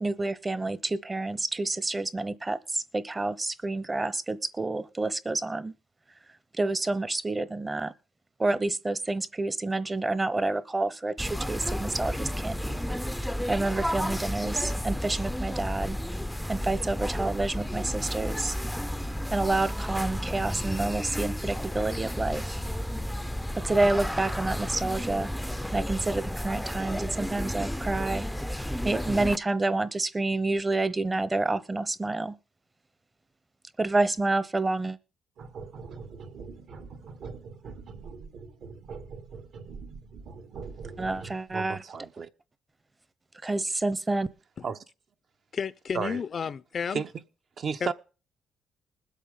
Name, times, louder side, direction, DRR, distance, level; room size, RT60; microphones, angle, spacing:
voice 1, 0.0-5.7 6.6-7.9 8.4-12.8 13.5-16.0 16.5-18.6 19.3-22.6 23.5-25.3 25.7-28.2 28.8-32.3 33.8-35.0 41.0-41.8 43.4-44.3, right 2 dB, 20° right, 0.9 m, -28 dB
sound 1, 11.2-29.4, equal, 5° left, 0.6 m, -32 dB
sound 2, 35.4-41.5, right 5 dB, 75° right, 2.6 m, -43 dB
voice 2, 41.5-42.3 44.6-44.8 45.9-46.2 46.9-47.1 47.6-47.9, right 6 dB, 55° right, 0.9 m, -32 dB
voice 3, 45.5-47.0 47.8-47.9, left 6 dB, 50° left, 0.6 m, -32 dB
20.5 x 8.3 x 3.7 m
cardioid pair, 90°, 0 cm